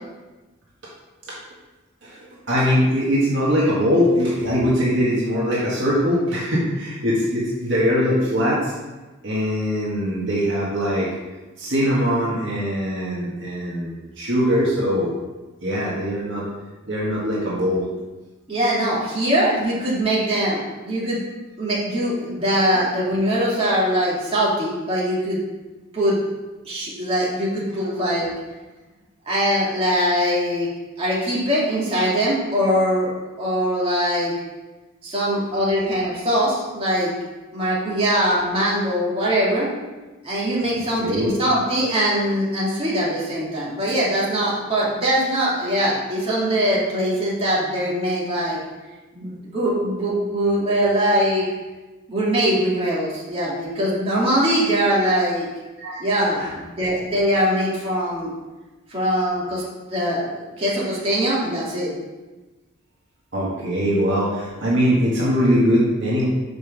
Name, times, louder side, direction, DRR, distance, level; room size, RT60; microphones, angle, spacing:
voice 1, 2.5-8.7 9.2-11.1 11.6-15.2 15.6-16.5 16.9-17.8 22.7-22.8 40.7-41.3 55.8-56.0 56.4-56.5 56.8-56.9 63.3-66.2, equal, 60° right, -6 dB, 1.7 m, -21 dB
voice 2, 18.5-21.2 21.6-25.4 25.9-26.2 26.7-28.3 29.3-30.7 31.0-33.1 33.4-34.3 35.0-37.1 37.5-39.7 40.2-48.6 49.1-51.4 52.1-55.5 56.0-58.3 58.9-59.6 59.9-61.9, equal, 30° right, -7 dB, 2.4 m, -22 dB
6.1 x 5.4 x 6.2 m, 1.2 s
head